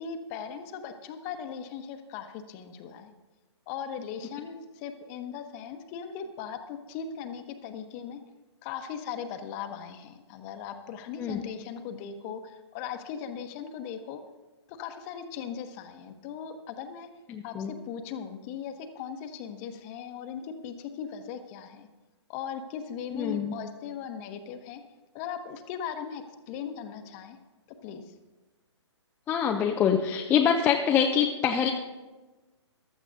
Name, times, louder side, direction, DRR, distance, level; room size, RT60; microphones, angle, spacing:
voice 1, 0.0-3.1 3.7-8.2 8.6-14.2 14.7-17.1 17.4-21.9 22.3-24.8 25.1-27.4 27.8-28.1, left 7 dB, 30° left, 7 dB, 1.0 m, -38 dB
voice 2, 17.3-17.7 23.1-23.5 29.3-31.7, left 8 dB, 15° left, 1 dB, 0.5 m, -25 dB
15.0 x 12.0 x 2.7 m, 1.2 s
hypercardioid pair, 135°, 15 cm